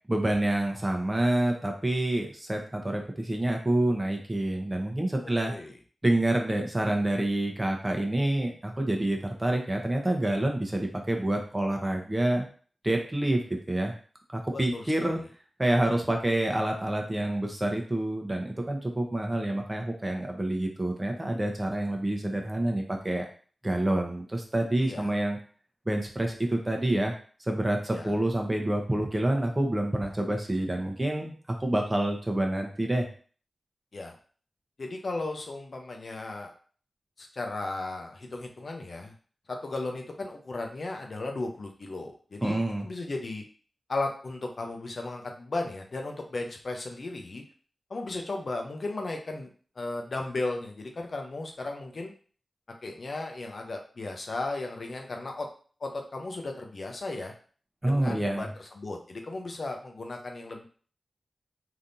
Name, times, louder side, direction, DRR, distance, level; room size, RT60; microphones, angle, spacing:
voice 1, 0.1-5.5 6.0-12.4 12.8-13.9 14.3-15.2 15.6-23.2 23.6-25.4 25.9-27.1 27.5-33.1 42.4-42.9 57.8-58.5, right 1 dB, 25° right, 2 dB, 0.8 m, -27 dB
voice 2, 5.2-5.7 14.5-15.2 24.8-25.1 27.9-28.2 33.9-34.1 34.8-36.5 37.2-39.1 39.5-43.4 43.9-47.4 47.9-49.5 49.8-52.1 52.8-55.5 55.8-57.3 57.9-60.7, left 2 dB, 65° left, 3 dB, 0.6 m, -35 dB
3.4 x 2.8 x 2.6 m, 0.42 s
cardioid pair, 45°, 0 cm